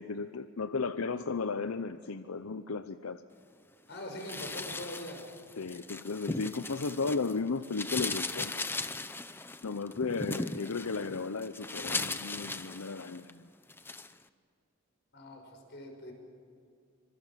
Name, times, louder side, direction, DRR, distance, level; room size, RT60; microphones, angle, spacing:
voice 1, 0.0-3.2 5.6-8.6 9.6-13.5, left 4 dB, 85° left, 11 dB, 0.7 m, -35 dB
voice 2, 3.9-5.2 15.1-16.1, left 1 dB, 55° left, 3 dB, 6.3 m, -42 dB
sound 1, 4.2-7.3 7.6-13.3 13.7-14.1, left 3 dB, 10° left, 0.6 m, -38 dB
26.5 x 26.0 x 7.5 m, 2.4 s
head